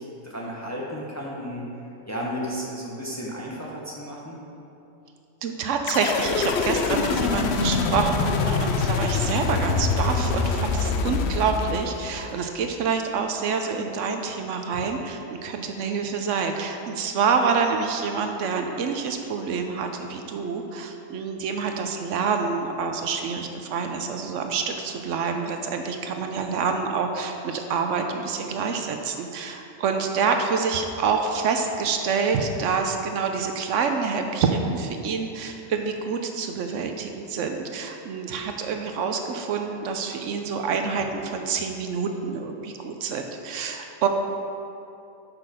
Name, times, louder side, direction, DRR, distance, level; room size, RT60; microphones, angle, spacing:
voice 1, 0.0-1.7 2.1-4.4, equal, 15° left, -4 dB, 0.7 m, -33 dB
voice 2, 5.4-44.1, right 5 dB, 75° right, 5 dB, 0.9 m, -27 dB
sound 1, 5.9-12.3, left 4 dB, 65° left, 0.7 m, -25 dB
6.4 x 5.9 x 4.9 m, 2.8 s
omnidirectional pair, 1.3 m